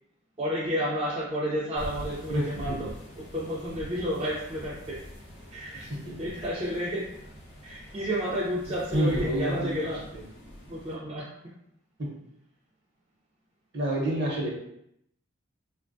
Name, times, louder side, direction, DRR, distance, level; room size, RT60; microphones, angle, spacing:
voice 1, 0.4-2.9 3.3-5.0 5.5-5.9 6.2-7.1 7.6-10.0 10.7-11.3, equal, 25° right, -7 dB, 0.4 m, -31 dB
sound 1, 1.7-10.9, equal, 55° left, 0.7 m, -44 dB
voice 2, 2.3-2.9 5.7-6.2 8.9-10.2 12.0-12.2 13.7-14.5, right 1 dB, 50° right, -3 dB, 0.7 m, -29 dB
3.2 x 2.2 x 2.5 m, 0.76 s
head